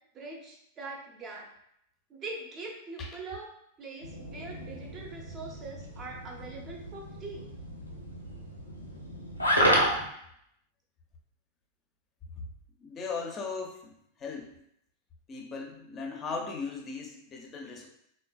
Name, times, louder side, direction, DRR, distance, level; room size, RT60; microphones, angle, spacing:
voice 1, 0.1-1.5 2.1-3.5 3.8-7.5, right 3 dB, 30° right, 0 dB, 0.6 m, -42 dB
sound 1, 4.0-10.0, equal, 85° left, 0.5 m, -31 dB
voice 2, 12.8-14.5 15.3-17.9, left 4 dB, 25° left, 2 dB, 0.5 m, -38 dB
3.2 x 2.1 x 2.3 m, 0.74 s
figure-of-eight pair, 90°, 0 cm